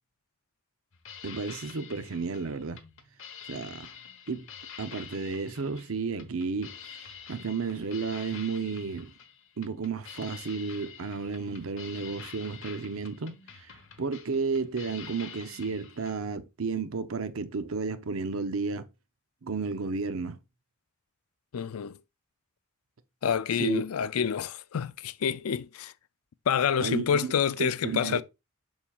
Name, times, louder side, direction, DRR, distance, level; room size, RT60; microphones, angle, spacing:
sound 1, 0.9-16.2, left 7 dB, 65° left, 1.1 m, -47 dB
voice 1, 1.2-2.8 3.5-3.9 4.3-4.5 4.8-9.1 9.6-18.9 19.4-20.4 23.6-23.8 26.8-27.3 27.6-28.2, right 4 dB, 70° right, 0.7 m, -33 dB
voice 2, 21.5-22.0 23.2-25.9 26.5-28.2, left 7 dB, 90° left, 0.4 m, -28 dB
7.2 x 5.6 x 2.4 m
head